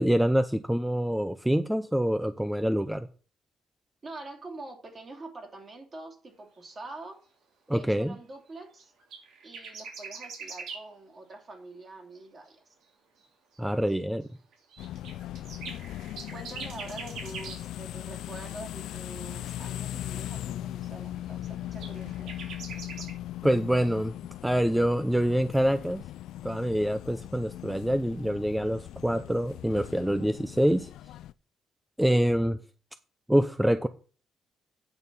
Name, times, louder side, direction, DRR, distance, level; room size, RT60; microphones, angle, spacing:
voice 1, 0.0-3.1 7.7-8.2 13.6-14.3 23.4-24.1 24.4-26.0 26.4-30.9 32.0-32.6 33.3-33.9, equal, 5° right, 0.6 m, -26 dB
voice 2, 4.0-7.2 7.7-8.9 9.4-12.6 16.3-22.4, right 2 dB, 35° right, 2.9 m, -45 dB
sound 1, 8.8-10.8 12.5-12.6 13.2-13.3 13.6-13.7 13.9-14.0 14.5-17.6 21.5-23.1, right 5 dB, 80° right, 3.5 m, -42 dB
sound 2, 14.8-31.3, left 13 dB, 85° left, 0.3 m, -39 dB
9.0 x 6.3 x 5.4 m
cardioid pair, 90°, 0 cm